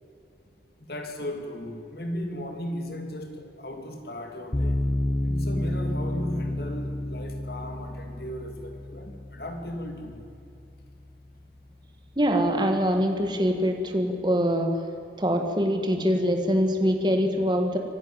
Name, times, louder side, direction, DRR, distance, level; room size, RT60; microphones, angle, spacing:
voice 1, 0.8-4.9 5.2-10.2, left 1 dB, 55° left, 4 dB, 2.8 m, -36 dB
sound 1, 4.5-11.6, left 1 dB, 30° left, 0.8 m, -31 dB
voice 2, 12.2-14.8 15.2-17.8, equal, 25° right, 4 dB, 1.6 m, -24 dB
25.0 x 12.5 x 8.8 m, 2.7 s
head